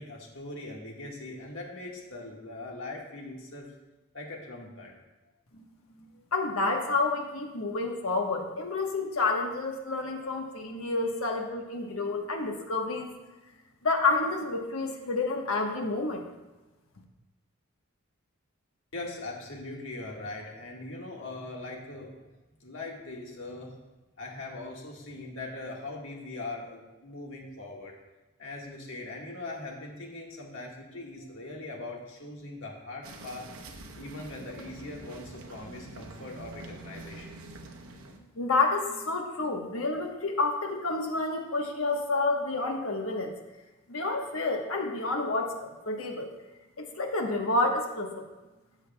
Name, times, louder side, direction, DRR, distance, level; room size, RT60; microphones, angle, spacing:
voice 1, 0.0-3.7 4.1-4.9 6.2-6.3 18.9-22.1 22.6-23.7 24.2-28.0 28.4-33.5 34.0-37.3, left 2 dB, 65° left, -1 dB, 1.6 m, -41 dB
voice 2, 6.3-13.1 13.8-16.3 38.3-43.3 43.9-46.3 46.8-48.2, left 3 dB, 80° left, 2 dB, 1.2 m, -29 dB
sound 1, 33.0-38.2, right 2 dB, 80° right, 0.9 m, -46 dB
14.0 x 6.3 x 2.3 m, 1.1 s
head